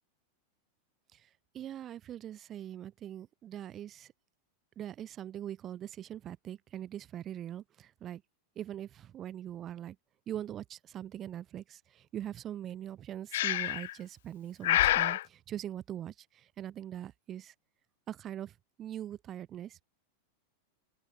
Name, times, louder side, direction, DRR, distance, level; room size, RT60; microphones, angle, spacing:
voice 1, 1.5-4.1 4.8-8.2 8.6-10.0 10.3-17.5 18.1-19.8, right 11 dB, 20° right, 0.6 m, -42 dB
Breathing, 13.3-13.9 14.6-15.2, left 15 dB, 65° left, 0.6 m, -27 dB
open air
supercardioid pair, 170°, 0 cm